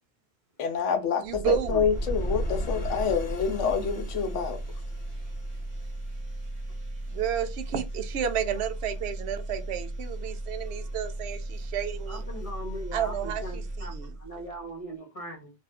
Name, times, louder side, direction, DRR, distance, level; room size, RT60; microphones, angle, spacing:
voice 1, 0.6-4.6, left 6 dB, 80° left, 1.0 m, -27 dB
sound 1, 1.2-6.3, equal, 60° left, 0.8 m, -35 dB
voice 2, 1.2-1.8 7.1-12.2 12.9-14.1, right 9 dB, 70° right, 0.8 m, -31 dB
sound 2, 1.3-14.7, right 1 dB, 25° right, 1.1 m, -37 dB
voice 3, 10.6-11.0 12.1-15.5, right 1 dB, 30° left, 0.9 m, -40 dB
2.6 x 2.4 x 3.3 m
omnidirectional pair, 1.2 m